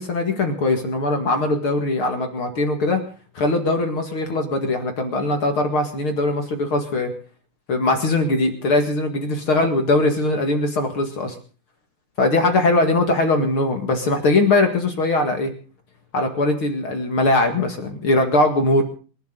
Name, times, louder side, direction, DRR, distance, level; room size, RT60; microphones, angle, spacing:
voice 1, 0.0-3.0 3.4-7.1 7.7-11.4 12.2-15.5 16.1-18.8, left 2 dB, 40° left, 5 dB, 2.4 m, -21 dB
28.0 x 11.5 x 4.0 m, 0.38 s
omnidirectional pair, 4.3 m